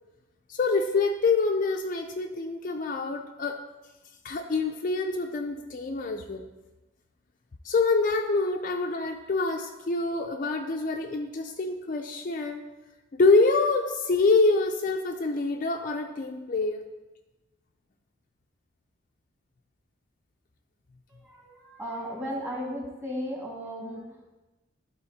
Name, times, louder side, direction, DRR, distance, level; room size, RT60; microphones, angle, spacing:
voice 1, 0.5-3.6 4.2-6.5 7.6-12.6 13.1-16.8, left 3 dB, 40° left, 3 dB, 0.4 m, -26 dB
voice 2, 21.3-24.4, equal, 10° right, -2 dB, 1.5 m, -35 dB
11.5 x 4.0 x 4.1 m, 1.1 s
head